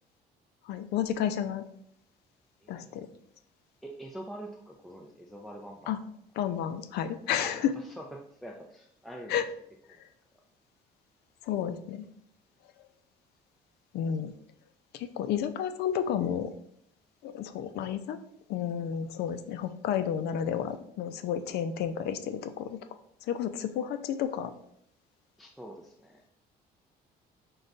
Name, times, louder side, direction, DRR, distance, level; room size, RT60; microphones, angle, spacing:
voice 1, 0.7-1.6 2.7-3.1 5.9-6.0 6.4-7.7 9.3-9.5 11.5-12.0 13.9-14.3 14.9-16.5 17.2-18.2 18.5-22.8 23.3-24.5, left 9 dB, 75° left, 11 dB, 0.4 m, -31 dB
voice 2, 2.6-3.0 3.8-5.9 7.4-9.4 9.9-10.0 25.4-26.2, right 1 dB, ahead, 0 dB, 0.4 m, -45 dB
5.2 x 2.3 x 3.8 m, 0.70 s
cardioid pair, 110°, 17 cm